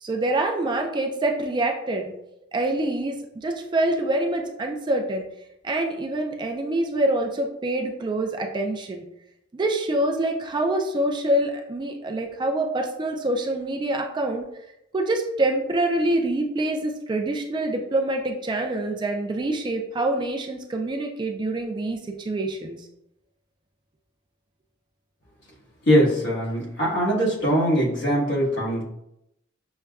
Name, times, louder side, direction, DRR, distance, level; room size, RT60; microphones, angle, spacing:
voice 1, 0.0-2.1 2.5-5.2 5.6-9.0 9.5-14.4 14.9-22.8, right 1 dB, 25° right, 3 dB, 0.3 m, -25 dB
voice 2, 25.9-28.8, equal, 60° left, -6 dB, 1.4 m, -21 dB
6.3 x 2.2 x 2.3 m, 0.83 s
head